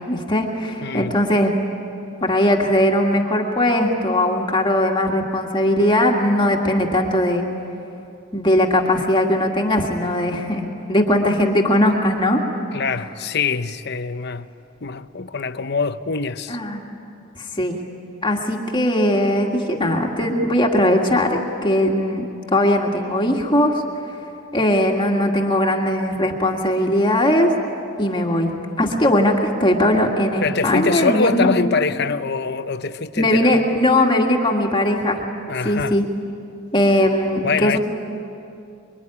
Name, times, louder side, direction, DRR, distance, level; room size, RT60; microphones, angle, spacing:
voice 1, 0.1-1.5 2.2-7.5 8.3-12.4 16.5-16.9 17.4-17.8 18.2-22.3 22.5-23.8 24.5-27.5 28.0-31.5 33.2-35.2 35.6-36.0 36.7-37.8, left 1 dB, 25° left, 2.0 m, -19 dB
voice 2, 0.8-1.2 12.7-14.5 14.8-16.6 30.4-33.6 35.5-36.0 37.4-37.8, left 4 dB, 55° left, 0.9 m, -23 dB
25.5 x 23.5 x 9.9 m
head